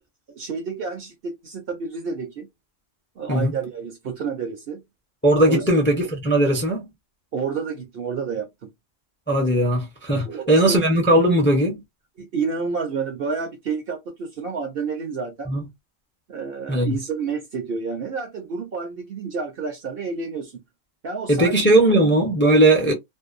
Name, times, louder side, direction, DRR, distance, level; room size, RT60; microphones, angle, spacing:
voice 1, 0.3-2.5 3.2-4.8 5.5-5.6 7.3-8.5 10.2-10.8 12.2-15.5 16.3-20.6 21.0-21.6, right 5 dB, 55° right, 0.8 m, -29 dB
voice 2, 5.2-6.9 9.3-11.8 15.5-15.6 16.7-16.9 21.3-22.9, right 1 dB, 15° left, 0.5 m, -18 dB
2.6 x 2.1 x 2.5 m
omnidirectional pair, 1.3 m